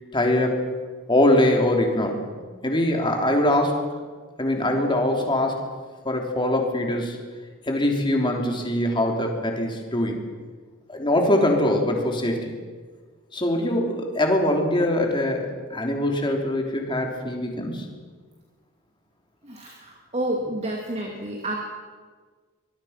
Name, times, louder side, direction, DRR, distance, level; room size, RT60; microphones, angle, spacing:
voice 1, 0.1-0.6 1.1-3.8 4.4-5.6 6.1-7.2 7.7-10.2 10.9-12.5 13.3-17.9, left 1 dB, 20° left, 2 dB, 3.4 m, -23 dB
voice 2, 19.4-21.6, right 1 dB, 30° right, 0 dB, 2.5 m, -30 dB
24.5 x 21.0 x 5.9 m, 1.5 s
head